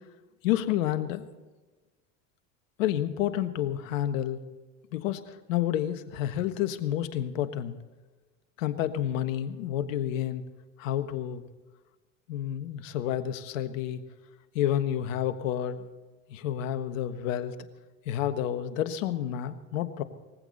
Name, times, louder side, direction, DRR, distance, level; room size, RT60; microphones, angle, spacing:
voice 1, 0.4-1.3 2.8-4.4 4.9-7.7 8.6-10.4 10.8-11.4 12.3-14.0 14.5-15.8 16.3-17.5 18.1-20.0, left 11 dB, 80° left, 10 dB, 1.4 m, -29 dB
20.0 x 15.5 x 4.1 m, 1.2 s
hypercardioid pair, 90°, 39 cm